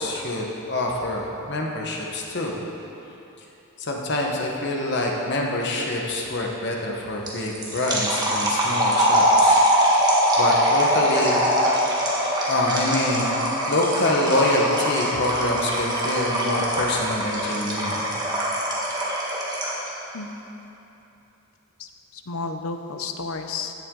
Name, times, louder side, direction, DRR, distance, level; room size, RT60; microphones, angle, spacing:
voice 1, 0.0-2.6 3.9-9.6 10.4-11.5 12.5-13.4 13.7-18.1, left 1 dB, 55° left, -1 dB, 1.3 m, -25 dB
sound 1, 7.3-19.9, equal, 20° right, 1.6 m, -22 dB
voice 2, 21.8-23.7, left 4 dB, 85° left, 6 dB, 0.7 m, -32 dB
15.5 x 7.8 x 3.9 m, 2.9 s
head